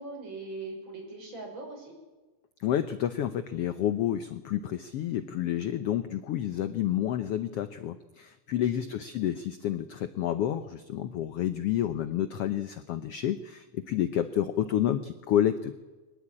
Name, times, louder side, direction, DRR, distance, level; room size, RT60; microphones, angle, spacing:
voice 1, 0.0-1.9 8.6-8.9, right 3 dB, 35° right, 1 dB, 6.5 m, -41 dB
voice 2, 2.6-15.7, left 11 dB, 70° left, 11 dB, 1.5 m, -29 dB
23.0 x 20.0 x 8.8 m, 1.2 s
omnidirectional pair, 3.6 m